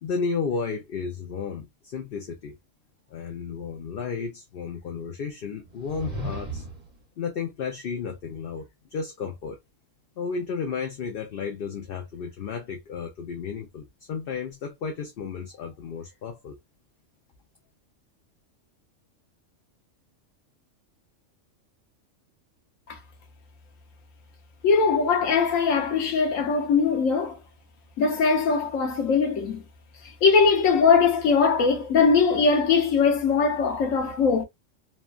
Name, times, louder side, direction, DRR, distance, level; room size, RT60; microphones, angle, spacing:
voice 1, 0.0-2.6 3.1-6.6 7.2-9.6 10.2-16.6, left 5 dB, 55° left, 0.7 m, -33 dB
sound 1, 5.6-7.0, right 1 dB, 30° right, 1.3 m, -35 dB
voice 2, 24.6-27.4 28.0-29.6 30.2-34.4, left 5 dB, 80° left, 1.2 m, -21 dB
3.1 x 2.3 x 2.3 m
omnidirectional pair, 1.3 m